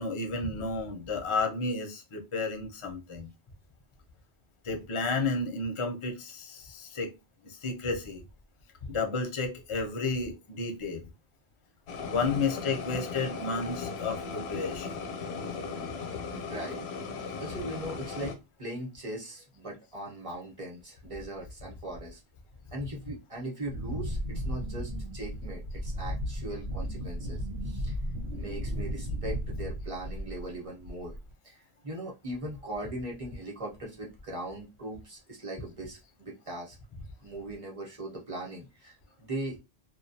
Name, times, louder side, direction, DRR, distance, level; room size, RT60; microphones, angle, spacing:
voice 1, 0.0-3.3 4.6-7.1 7.4-8.2 8.9-11.0 12.0-15.0, left 3 dB, 40° left, 0.5 m, -32 dB
sound 1, 11.9-18.3, left 5 dB, 90° left, 0.8 m, -37 dB
voice 2, 16.3-16.8 17.4-22.2 22.7-28.0 28.3-31.1 31.4-36.8 37.2-39.6, right 1 dB, 35° right, 0.9 m, -39 dB
Wind, 23.7-30.5 30.8-31.3, equal, 80° right, 1.0 m, -35 dB
2.3 x 2.2 x 2.6 m
omnidirectional pair, 1.0 m